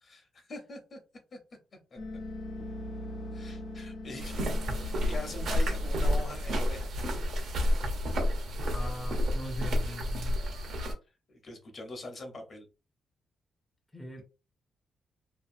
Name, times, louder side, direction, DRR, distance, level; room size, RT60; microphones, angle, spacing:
voice 1, 0.0-1.0 1.3-1.4 1.9-2.0 3.3-6.9 10.4-10.5 11.3-12.7, left 2 dB, 40° left, 0.8 m, -43 dB
sound 1, 2.0-6.6, left 1 dB, 70° left, 1.0 m, -42 dB
sound 2, 4.2-10.9, equal, 70° right, 0.7 m, -30 dB
voice 2, 8.5-10.4 13.9-14.2, left 1 dB, 5° left, 0.5 m, -41 dB
2.8 x 2.4 x 2.5 m
cardioid pair, 135°, 0 cm